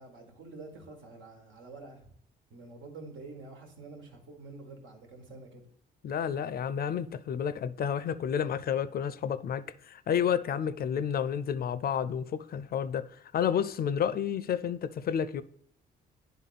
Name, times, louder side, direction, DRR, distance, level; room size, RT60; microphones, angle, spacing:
voice 1, 0.0-2.1 2.5-5.7, right 3 dB, 80° right, 1.6 m, -47 dB
voice 2, 6.0-13.1 13.3-15.4, left 8 dB, 50° left, 0.4 m, -30 dB
9.2 x 3.5 x 4.1 m
cardioid pair, 90°, 20 cm